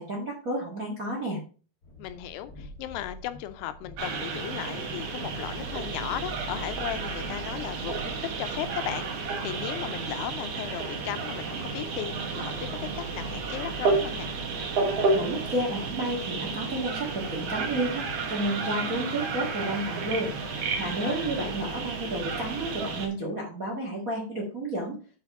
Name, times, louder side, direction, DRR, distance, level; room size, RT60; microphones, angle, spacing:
voice 1, 0.0-1.4 15.1-20.3 20.8-25.0, right 1 dB, 55° right, 0.9 m, -31 dB
Train, 1.8-8.7, left 1 dB, 55° left, 1.0 m, -48 dB
voice 2, 2.0-14.3 21.0-21.6, left 12 dB, 85° left, 2.7 m, -36 dB
sound 1, 4.0-23.1, right 4 dB, 90° right, 1.3 m, -31 dB
Idling, 6.4-21.6, equal, 25° right, 0.4 m, -51 dB
6.8 x 5.7 x 4.8 m
omnidirectional pair, 4.7 m